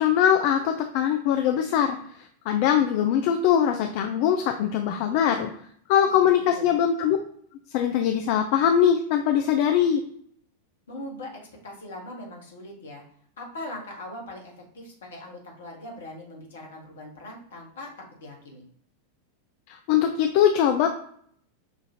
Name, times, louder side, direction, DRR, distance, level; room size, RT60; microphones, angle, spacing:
voice 1, 0.0-2.0 2.5-5.5 5.9-7.2 7.7-10.0 19.7-20.9, left 9 dB, 45° left, 5 dB, 0.3 m, -22 dB
voice 2, 6.4-6.7 10.9-11.3 11.6-13.0 13.4-17.9 18.2-18.6, left 1 dB, 65° left, 0 dB, 1.2 m, -40 dB
6.2 x 2.5 x 2.7 m, 0.63 s
figure-of-eight pair, 90°, 0 cm